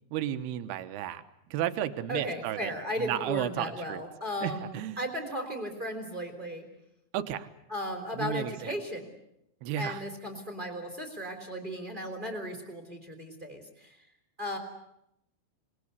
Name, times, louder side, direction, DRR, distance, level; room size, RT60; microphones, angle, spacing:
voice 1, 0.1-1.2 1.5-2.7 3.0-4.0 4.4-5.0 7.1-7.5 8.2-8.7 9.6-10.0, right 11 dB, 80° right, 9 dB, 3.1 m, -33 dB
voice 2, 2.1-6.6 7.7-9.1 9.8-14.0 14.4-14.6, equal, 15° right, 4 dB, 3.1 m, -36 dB
27.5 x 20.5 x 8.2 m, 0.81 s
omnidirectional pair, 4.6 m